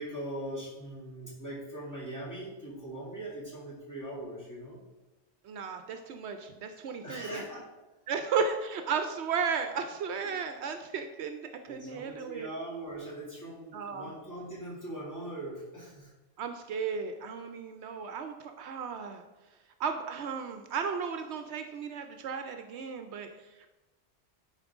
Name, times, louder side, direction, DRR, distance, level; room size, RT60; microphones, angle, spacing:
voice 1, 0.0-4.8 7.0-7.7 10.2-10.3 11.6-16.1, right 1 dB, 15° left, -7 dB, 2.2 m, -41 dB
voice 2, 5.4-7.4 8.1-12.5 13.7-14.1 16.4-19.2 19.8-23.7, right 6 dB, 75° right, 7 dB, 0.8 m, -34 dB
10.5 x 4.3 x 3.5 m, 1.1 s
omnidirectional pair, 1.2 m